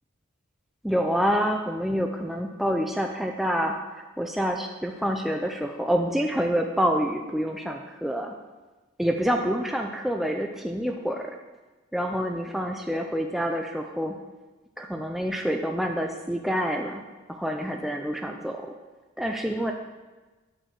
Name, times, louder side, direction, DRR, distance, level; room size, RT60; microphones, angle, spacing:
voice 1, 0.8-8.4 9.0-11.4 11.9-14.2 14.8-17.0 17.3-18.7 19.2-19.7, equal, ahead, 2 dB, 0.4 m, -27 dB
8.6 x 4.7 x 7.1 m, 1.2 s
head